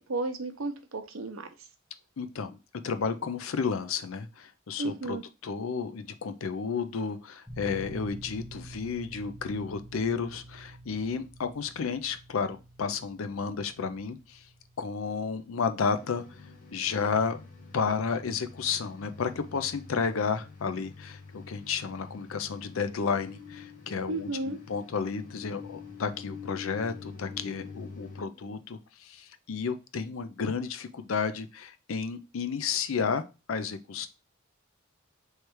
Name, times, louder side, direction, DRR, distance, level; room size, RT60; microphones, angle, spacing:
voice 1, 0.0-1.5 4.8-5.2 24.1-24.6, right 2 dB, 80° right, 7 dB, 0.7 m, -33 dB
voice 2, 2.2-2.6 2.8-14.4 14.8-16.2 16.7-17.4 17.7-34.1, left 5 dB, 80° left, 10 dB, 0.5 m, -32 dB
sound 1, 7.5-21.9, right 1 dB, 5° left, 1.2 m, -50 dB
sound 2, 15.9-28.2, left 5 dB, 40° left, 0.8 m, -46 dB
3.2 x 3.2 x 4.5 m, 0.30 s
head